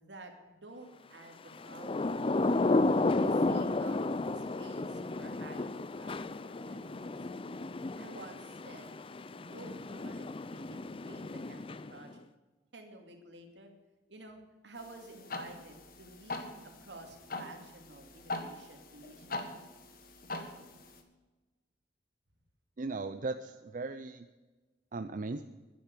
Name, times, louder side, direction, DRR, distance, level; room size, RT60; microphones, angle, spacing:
voice 1, 0.0-2.3 3.2-4.0 4.3-6.1 6.4-7.2 8.0-8.9 9.3-12.3 12.7-13.7 14.1-19.6, right 2 dB, 80° right, 4 dB, 2.6 m, -52 dB
Thunder / Rain, 1.6-12.1, left 2 dB, 30° left, 0.5 m, -33 dB
sound 1, 14.8-21.0, left 2 dB, 55° left, 1.6 m, -43 dB
voice 2, 22.8-24.3 24.9-25.4, right 3 dB, 45° right, 9 dB, 0.5 m, -37 dB
11.0 x 10.5 x 8.4 m, 1.2 s
head